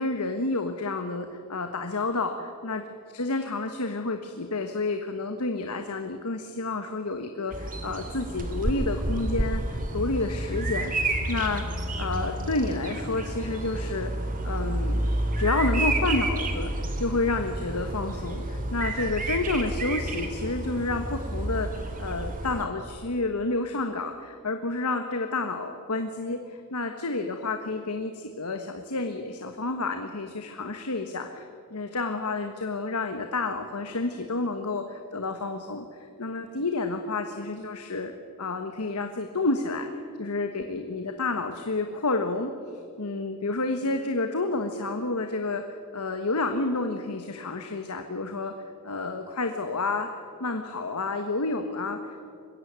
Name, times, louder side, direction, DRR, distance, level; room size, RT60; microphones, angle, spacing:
voice 1, 0.0-2.8 3.1-11.6 12.0-14.1 14.4-15.1 15.4-31.4 31.7-39.9 40.2-42.5 43.0-45.6 45.9-48.5 48.8-50.1 50.4-52.3, left 3 dB, 85° left, 6 dB, 1.4 m, -30 dB
Bird vocalization bird call bird song, 7.5-22.6, right 1 dB, 40° right, 2.8 m, -30 dB
22.0 x 16.0 x 9.5 m, 2.3 s
head